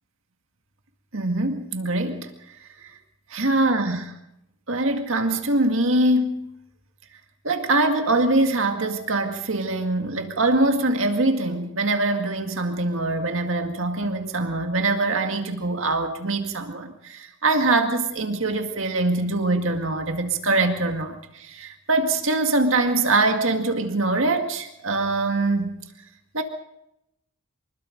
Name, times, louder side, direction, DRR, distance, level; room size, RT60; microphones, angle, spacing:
voice 1, 1.1-2.6 2.8-3.0 3.3-4.1 4.7-6.5 7.4-25.7 26.3-26.4, right 2 dB, 60° right, 5 dB, 2.1 m, -23 dB
25.0 x 20.5 x 5.3 m, 0.83 s
head